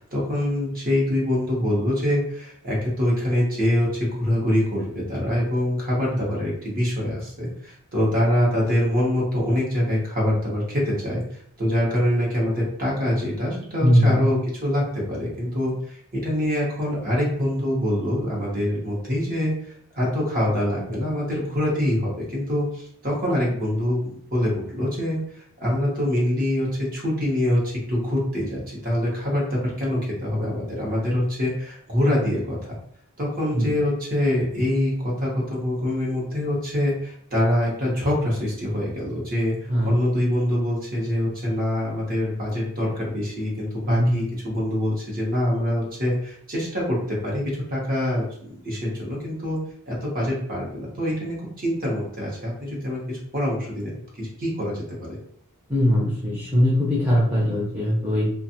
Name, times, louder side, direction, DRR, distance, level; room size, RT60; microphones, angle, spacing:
voice 1, 0.1-19.5 19.9-24.0 24.3-32.6 33.2-39.6 39.8-47.4 47.7-49.6 49.9-55.2, left 1 dB, 40° right, -4 dB, 1.0 m, -25 dB
voice 2, 13.8-14.3 33.5-33.7 39.7-39.9 43.8-44.2 55.7-58.3, equal, 5° right, -8 dB, 0.8 m, -20 dB
2.5 x 2.4 x 2.7 m, 0.65 s
head